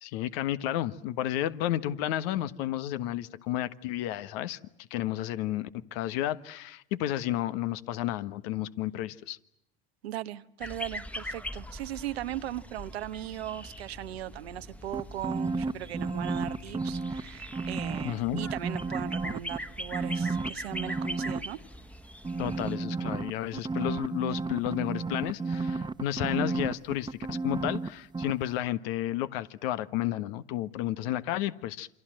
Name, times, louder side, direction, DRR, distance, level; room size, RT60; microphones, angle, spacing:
voice 1, 0.0-4.6 4.9-9.4 18.0-18.4 22.4-31.9, left 13 dB, 70° left, 1.4 m, -32 dB
voice 2, 10.0-21.6, right 12 dB, 85° right, 1.2 m, -38 dB
sound 1, 10.6-22.7, equal, 5° left, 1.4 m, -42 dB
sound 2, 14.9-17.2 17.5-19.6 19.9-21.4 22.2-27.9 28.1-28.3, right 3 dB, 15° right, 1.1 m, -32 dB
28.5 x 25.5 x 7.8 m
hypercardioid pair, 80°, 30 cm